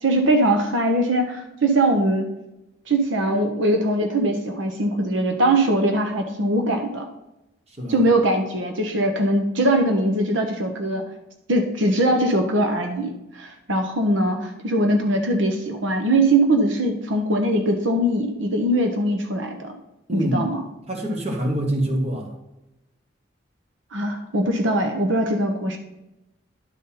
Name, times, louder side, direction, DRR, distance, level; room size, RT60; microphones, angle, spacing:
voice 1, 0.0-2.3 2.9-7.1 7.9-11.0 11.5-19.7 20.1-20.6 23.9-25.8, right 1 dB, 75° right, 4 dB, 1.0 m, -21 dB
voice 2, 7.7-8.0 20.1-20.5 20.9-22.3, right 1 dB, 35° right, 1 dB, 1.5 m, -25 dB
11.0 x 4.0 x 5.6 m, 0.94 s
head